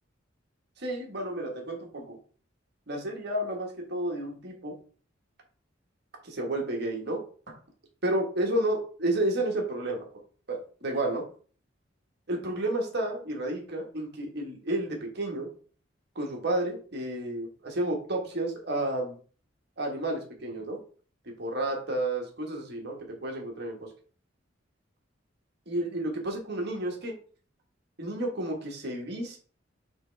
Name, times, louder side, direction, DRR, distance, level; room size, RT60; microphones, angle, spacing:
voice 1, 0.8-2.2 2.9-4.8 6.2-7.2 8.0-10.0 10.5-11.2 12.3-15.5 16.1-19.2 19.8-20.8 21.2-23.9 25.7-27.1 28.0-29.4, right 1 dB, 60° right, 1 dB, 1.5 m, -31 dB
7.9 x 3.7 x 3.3 m, 0.42 s
head